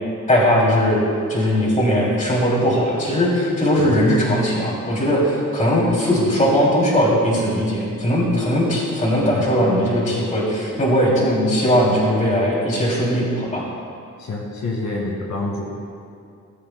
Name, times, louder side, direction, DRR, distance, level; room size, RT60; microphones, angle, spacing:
voice 1, 0.3-1.0 1.3-13.6, equal, 25° left, -4 dB, 2.8 m, -19 dB
voice 2, 14.2-15.8, left 2 dB, 60° left, -3 dB, 2.0 m, -27 dB
18.0 x 13.5 x 2.2 m, 2.4 s
wide cardioid pair, 175°, 32 cm